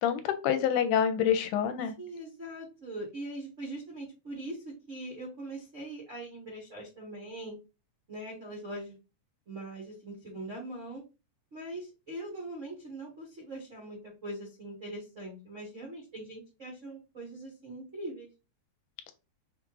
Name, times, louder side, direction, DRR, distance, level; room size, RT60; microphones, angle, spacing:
voice 1, 0.0-1.9, left 8 dB, 85° left, 9 dB, 2.0 m, -27 dB
voice 2, 2.0-7.5 8.1-9.0 9.5-11.0 11.5-18.3, right 1 dB, 80° right, -2 dB, 0.6 m, -41 dB
5.4 x 2.4 x 3.0 m, 0.29 s
omnidirectional pair, 3.6 m